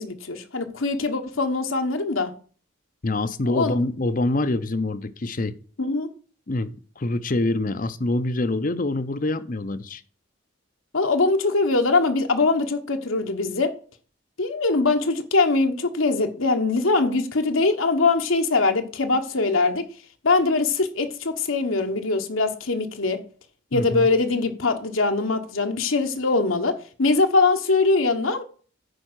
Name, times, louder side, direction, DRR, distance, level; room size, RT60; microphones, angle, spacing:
voice 1, 0.0-2.3 3.5-3.8 5.8-6.1 10.9-13.7 14.4-19.8 20.2-23.2 23.7-28.4, left 3 dB, 75° left, 1.3 m, -22 dB
voice 2, 3.0-5.6 6.5-10.0 23.7-24.1, left 2 dB, 40° left, 0.7 m, -25 dB
10.0 x 4.9 x 6.3 m
head